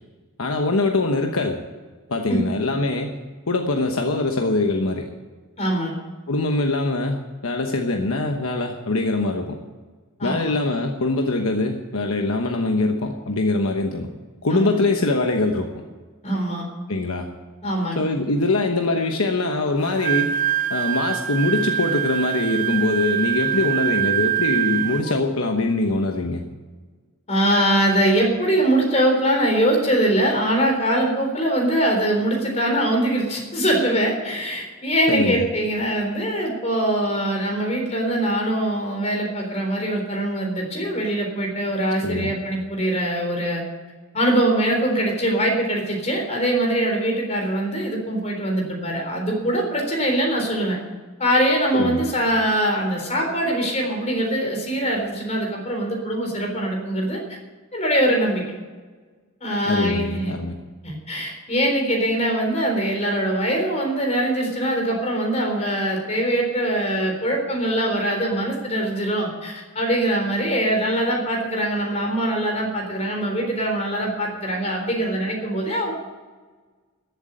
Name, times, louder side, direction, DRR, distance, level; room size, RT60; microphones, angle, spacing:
voice 1, 0.4-1.6 2.1-3.2 3.5-5.1 6.3-9.6 10.2-14.1 14.4-15.7 16.9-17.3 18.0-20.4 20.7-26.4 35.1-35.4 42.0-42.3 51.7-52.0 59.6-60.5, left 2 dB, 70° left, 3 dB, 1.1 m, -23 dB
voice 2, 5.6-5.9 10.2-10.5 14.5-14.8 16.2-16.6 17.6-18.0 27.3-43.6 44.1-50.8 51.2-57.4 57.7-58.4 59.4-60.3 60.8-75.9, right 1 dB, 30° left, 1 dB, 3.8 m, -22 dB
Wind instrument woodwind instrument, 19.8-25.2, right 11 dB, 35° right, 0.6 m, -24 dB
14.0 x 8.1 x 9.0 m, 1.4 s
head